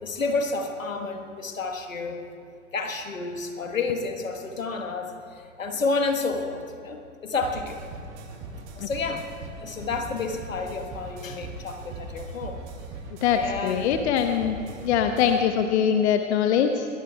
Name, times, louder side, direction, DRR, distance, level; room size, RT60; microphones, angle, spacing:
voice 1, 0.0-2.2 2.7-7.8 8.7-9.3 9.6-12.6 13.3-13.9, left 4 dB, 85° left, 5 dB, 1.4 m, -30 dB
sound 1, 7.4-15.4, right 3 dB, 50° right, 2.6 m, -40 dB
voice 2, 13.2-14.6 14.8-16.9, left 8 dB, 60° left, 6 dB, 1.0 m, -22 dB
21.5 x 21.5 x 2.3 m, 2.6 s
figure-of-eight pair, 95°, 38 cm